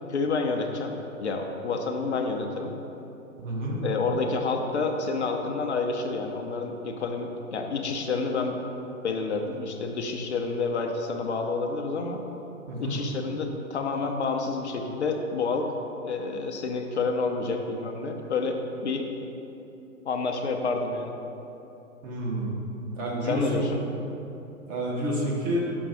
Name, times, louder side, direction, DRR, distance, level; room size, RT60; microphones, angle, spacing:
voice 1, 0.1-0.9 1.2-2.8 3.8-8.6 9.0-12.2 12.8-15.7 16.0-19.1 20.0-21.1 23.2-23.8, left 4 dB, 50° left, 3 dB, 0.7 m, -29 dB
voice 2, 3.4-3.8 12.7-13.0 22.0-22.5 23.0-23.6 24.7-25.6, right 1 dB, 20° right, -4 dB, 1.0 m, -29 dB
6.0 x 5.3 x 4.9 m, 2.9 s
figure-of-eight pair, 120°, 42 cm